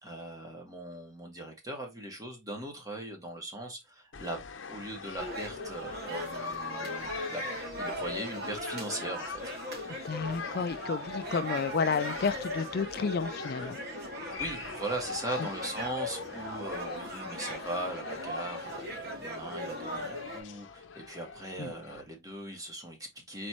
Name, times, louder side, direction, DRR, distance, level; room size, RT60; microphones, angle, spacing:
voice 1, 0.0-4.4 4.7-7.4 7.8-9.4 14.4-23.5, right 1 dB, 20° right, 1.6 m, -39 dB
sound 1, 4.1-22.0, left 5 dB, 80° left, 0.7 m, -44 dB
sound 2, 5.2-20.4, equal, 55° right, 2.3 m, -38 dB
voice 2, 10.0-13.8 21.6-21.7, left 5 dB, 55° left, 0.4 m, -31 dB
4.4 x 4.2 x 2.9 m
head